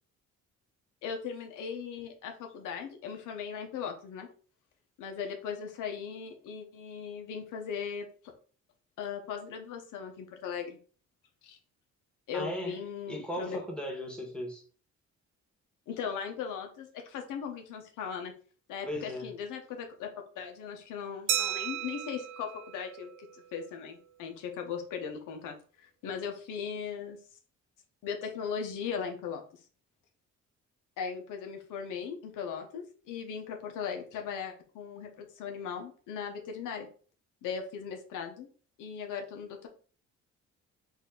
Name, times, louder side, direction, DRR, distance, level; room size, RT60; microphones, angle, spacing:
voice 1, 1.0-4.3 5.0-8.1 9.0-10.8 11.4-11.6 12.3-13.6 15.9-18.3 18.7-20.1 20.4-25.5 25.8-27.2 28.0-29.4 31.0-36.9 37.4-38.5 38.8-39.7, left 6 dB, 90° left, 4 dB, 0.8 m, -38 dB
voice 2, 12.3-12.8 13.1-14.6 18.9-19.3, left 1 dB, 5° left, 0 dB, 1.4 m, -37 dB
Glass, 21.3-23.7, right 11 dB, 80° right, 0.9 m, -35 dB
4.2 x 2.6 x 3.7 m, 0.41 s
cardioid pair, 90°, 30 cm